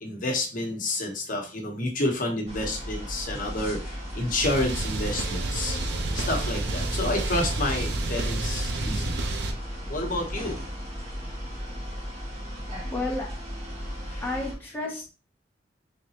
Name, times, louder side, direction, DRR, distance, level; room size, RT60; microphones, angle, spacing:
voice 1, 0.0-5.8 6.1-9.2 9.9-10.6 14.1-14.2, left 2 dB, 45° left, 1 dB, 1.0 m, -29 dB
sound 1, 2.5-14.5, equal, 35° right, 1.6 m, -36 dB
sound 2, 4.4-9.5, right 2 dB, 70° right, 0.6 m, -30 dB
voice 2, 12.9-13.3 14.2-15.1, left 2 dB, 10° left, -2 dB, 0.8 m, -31 dB
3.9 x 3.6 x 2.9 m, 0.33 s
head